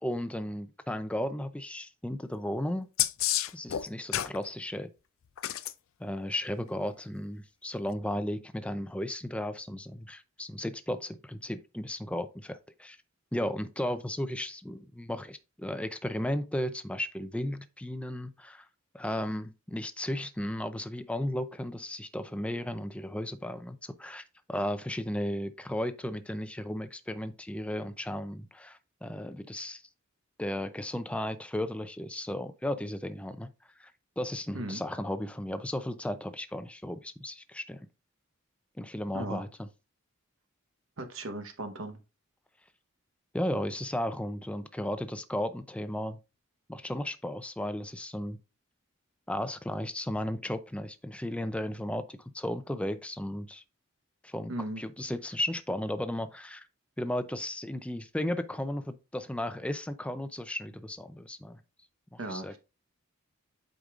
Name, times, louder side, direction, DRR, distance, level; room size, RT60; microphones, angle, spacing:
voice 1, 0.0-2.9 3.5-4.9 6.0-13.0 13.3-18.7 18.9-24.2 24.5-29.8 30.4-33.5 33.8-33.9 34.2-37.8 38.8-39.7 43.3-46.2 46.7-48.4 49.3-53.6 54.2-54.5 54.8-56.7 57.0-61.6 62.1-62.6, left 1 dB, 5° left, 0.4 m, -35 dB
sound 1, 3.0-4.4 5.4-5.7 7.9-8.0, left 13 dB, 70° left, 0.4 m, -29 dB
voice 2, 41.0-42.0 54.5-54.8 62.2-62.6, right 2 dB, 65° right, 1.1 m, -37 dB
8.0 x 5.2 x 2.5 m
head